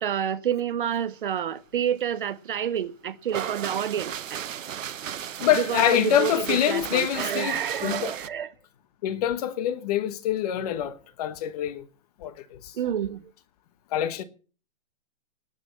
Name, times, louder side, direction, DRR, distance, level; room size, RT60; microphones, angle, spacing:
voice 1, 0.0-4.4 5.5-8.5 12.8-13.3, right 9 dB, 40° right, 0.7 m, -29 dB
sound 1, 3.3-8.3, right 9 dB, 75° right, 0.9 m, -35 dB
voice 2, 5.4-8.1 9.0-11.8 12.2-12.8 13.9-14.2, left 11 dB, 30° left, 1.2 m, -25 dB
19.0 x 6.3 x 7.3 m
hypercardioid pair, 160°, 39 cm